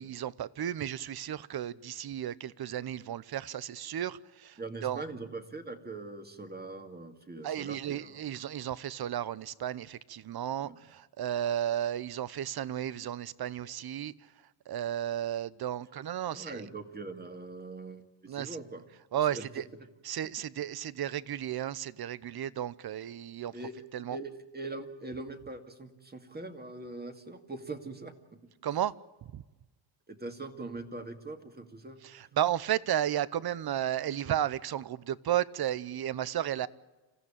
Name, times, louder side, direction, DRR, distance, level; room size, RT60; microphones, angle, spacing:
voice 1, 0.0-5.0 7.4-14.1 14.7-16.6 18.3-18.6 19.1-19.6 20.0-23.5 23.9-24.2 28.6-28.9 29.3-29.4 32.1-36.7, right 11 dB, 50° right, 0.9 m, -33 dB
voice 2, 4.6-8.4 10.6-10.8 16.3-18.8 19.3-19.5 23.5-23.7 24.1-28.4 30.1-32.0, right 2 dB, 20° right, 2.3 m, -42 dB
27.5 x 15.5 x 8.8 m
cardioid pair, 115°, 47 cm